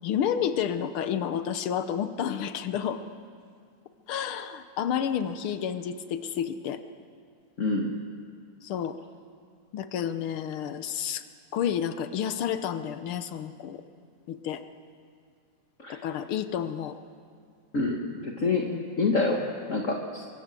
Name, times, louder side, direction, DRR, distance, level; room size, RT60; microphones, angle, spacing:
voice 1, 0.0-3.0 4.1-6.8 8.6-8.9 9.7-11.2 11.5-13.8 14.3-14.6 15.9-17.0 18.6-18.8, left 9 dB, 85° left, 10 dB, 1.2 m, -30 dB
voice 2, 7.6-7.9 15.8-16.0 17.7-18.7 19.0-20.2, left 3 dB, 40° left, 0 dB, 1.1 m, -27 dB
24.5 x 24.5 x 7.6 m, 2.2 s
omnidirectional pair, 3.6 m